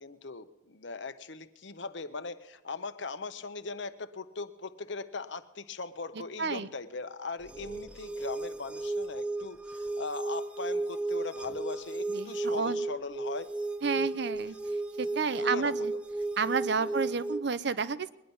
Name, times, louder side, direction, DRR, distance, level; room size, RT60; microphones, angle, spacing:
voice 1, 0.0-13.5 14.0-14.1 15.4-15.9 16.8-17.0, left 4 dB, 65° left, 11 dB, 0.9 m, -40 dB
sound 1, 7.4-17.4, right 2 dB, 5° right, 0.5 m, -34 dB
voice 2, 12.1-12.8 13.8-14.6 15.0-15.9 16.4-18.1, right 5 dB, 60° right, 16 dB, 0.6 m, -31 dB
21.0 x 11.0 x 5.5 m, 0.98 s
head